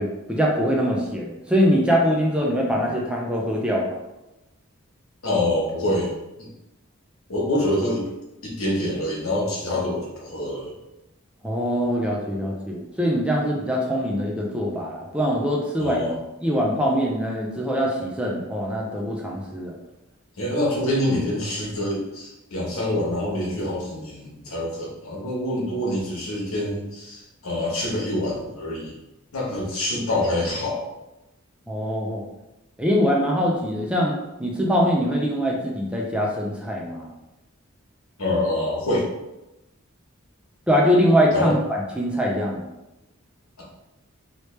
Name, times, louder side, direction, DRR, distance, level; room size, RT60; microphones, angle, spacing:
voice 1, 0.0-3.9 11.4-16.0 16.4-19.7 31.7-32.2 32.8-37.1 40.7-42.6, equal, 5° right, -2 dB, 0.4 m, -23 dB
voice 2, 5.2-6.1 6.4-6.5 7.3-8.0 8.4-10.7 15.8-16.2 20.4-28.9 29.3-30.9 38.2-39.1 41.3-41.6, left 1 dB, 80° left, -3 dB, 1.1 m, -26 dB
3.2 x 2.8 x 3.1 m, 0.96 s
head